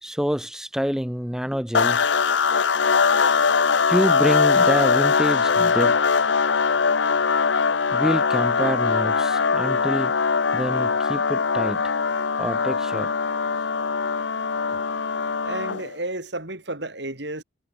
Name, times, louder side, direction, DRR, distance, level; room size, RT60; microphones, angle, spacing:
voice 1, 0.0-2.0 3.9-6.0 7.9-10.1 10.5-11.9 12.4-13.1, equal, 5° right, 0.8 m, -26 dB
sound 1, 1.7-15.9, left 5 dB, 75° left, 0.8 m, -21 dB
voice 2, 15.4-17.4, right 2 dB, 65° right, 5.1 m, -32 dB
head